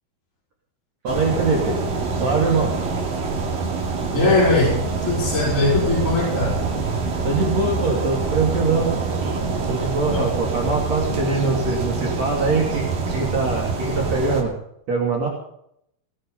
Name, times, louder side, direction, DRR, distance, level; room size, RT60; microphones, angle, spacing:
voice 1, 1.0-1.8 2.2-2.7 7.2-9.0 9.7-14.5 14.9-15.3, right 3 dB, 45° right, -2 dB, 3.9 m, -23 dB
sound 1, 1.1-14.4, right 4 dB, 65° right, 4.4 m, -25 dB
voice 2, 4.1-6.6 10.1-10.2, left 2 dB, 20° left, -5 dB, 6.3 m, -20 dB
19.5 x 11.0 x 5.6 m, 0.73 s
omnidirectional pair, 4.4 m